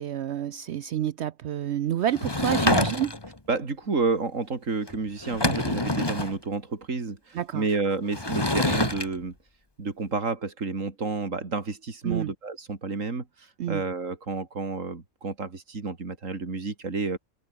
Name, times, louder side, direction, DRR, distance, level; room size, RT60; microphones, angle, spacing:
voice 1, 0.0-3.1 7.3-7.6 12.0-12.3 13.6-13.8, right 10 dB, 65° right, 0.9 m, -28 dB
Sliding door / Wood, 2.1-3.4 4.9-5.0 5.2-6.3 8.1-9.1, left 2 dB, 20° left, 1.8 m, -26 dB
voice 2, 3.5-9.3 9.8-17.2, right 4 dB, 80° right, 3.2 m, -30 dB
open air
omnidirectional pair, 1.3 m